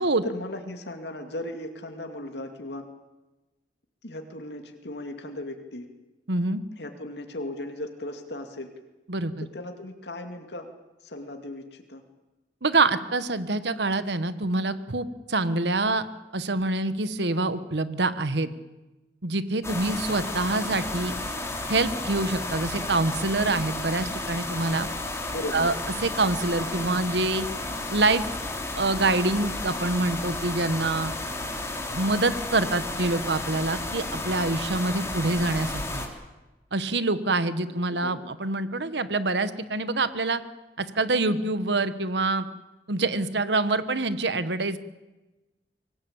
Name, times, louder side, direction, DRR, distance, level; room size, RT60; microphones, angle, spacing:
voice 1, 0.0-2.9 4.0-5.9 6.8-8.7 9.4-10.7 11.0-12.0 25.3-25.7 37.6-38.3, left 1 dB, 75° left, 5 dB, 2.5 m, -37 dB
voice 2, 6.3-6.6 9.1-9.5 12.6-16.1 16.3-18.5 19.2-21.1 21.7-24.9 25.5-25.7 26.0-27.5 27.9-28.2 28.8-31.1 31.9-36.0 36.7-40.4 40.8-42.5 42.9-44.8, right 2 dB, 80° right, 13 dB, 1.3 m, -26 dB
sound 1, 19.6-36.1, left 2 dB, 15° left, 3.1 m, -33 dB
24.5 x 18.0 x 8.8 m, 1.1 s
head